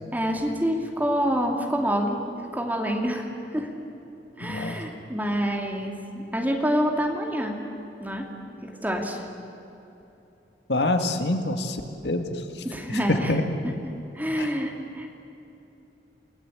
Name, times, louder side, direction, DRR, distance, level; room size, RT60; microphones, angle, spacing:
voice 1, 0.1-2.2 2.5-3.3 3.5-3.7 4.4-7.6 8.0-8.3 8.6-9.2 12.6-13.7 14.1-15.1, equal, 10° right, 2 dB, 2.8 m, -27 dB
voice 2, 4.4-4.8 10.7-11.8 12.0-12.2 13.3-13.4 14.4-14.5, left 2 dB, 70° left, 6 dB, 1.9 m, -25 dB
29.0 x 18.5 x 8.8 m, 3.0 s
head